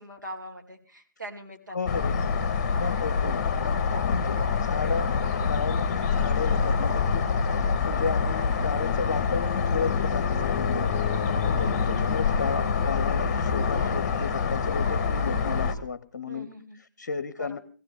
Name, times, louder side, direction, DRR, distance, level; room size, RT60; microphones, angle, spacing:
voice 1, 0.0-2.3 2.7-2.8 6.1-6.3 7.9-8.3 11.5-12.2 16.3-16.8 17.4-17.6, equal, 80° right, 2 dB, 2.8 m, -43 dB
voice 2, 1.7-2.2 2.8-7.3 7.5-10.9 11.5-17.6, left 5 dB, 50° left, 13 dB, 0.8 m, -34 dB
sound 1, 1.9-15.7, left 5 dB, 30° left, 1.2 m, -26 dB
18.0 x 16.0 x 3.5 m, 0.39 s
figure-of-eight pair, 135°, 10 cm